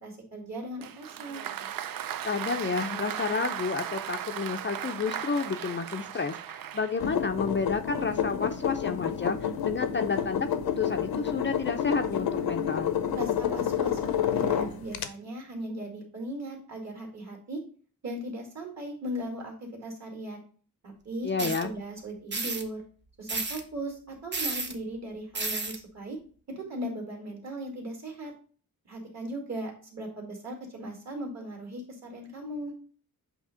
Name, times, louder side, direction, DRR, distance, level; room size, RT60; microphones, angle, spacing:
voice 1, 0.0-1.5 13.1-17.6 18.0-20.4 20.8-22.8 23.2-26.2 26.5-28.3 28.9-32.7, right 1 dB, 50° right, 1 dB, 2.2 m, -38 dB
Applause, 0.8-7.1, right 10 dB, 70° right, 0.5 m, -36 dB
voice 2, 2.2-12.9 21.2-21.7, left 4 dB, 35° left, 6 dB, 0.4 m, -31 dB
sound 1, 7.0-15.1, left 8 dB, 85° left, 0.7 m, -29 dB
sound 2, 21.4-21.6 22.3-22.6 23.3-23.6 24.3-24.7 25.3-25.8, right 3 dB, 30° right, 0.9 m, -31 dB
8.0 x 2.8 x 4.9 m, 0.42 s
wide cardioid pair, 145°, 35 cm